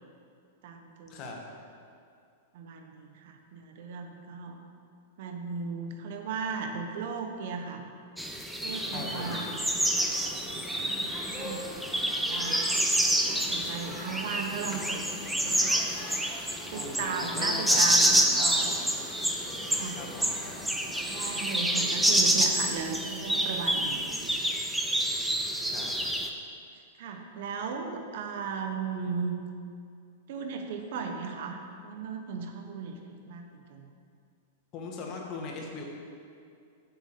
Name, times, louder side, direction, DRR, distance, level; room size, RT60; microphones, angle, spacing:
voice 1, 0.6-1.2 2.5-4.6 5.2-7.8 8.6-9.5 9.9-10.1 10.8-12.6 13.2-15.8 16.7-18.7 19.7-20.1 21.0-24.4 27.0-29.3 30.3-33.9, right 5 dB, 60° right, 4 dB, 1.2 m, -36 dB
sound 1, 8.2-26.3, right 1 dB, 5° right, 0.6 m, -28 dB
sound 2, 8.7-22.4, left 2 dB, 20° left, 1.4 m, -44 dB
voice 2, 8.9-9.4 16.7-18.8 19.9-20.4 25.7-25.9 34.7-35.8, left 4 dB, 35° left, 0 dB, 1.7 m, -39 dB
8.2 x 7.6 x 5.2 m, 2.4 s
hypercardioid pair, 145°, 0 cm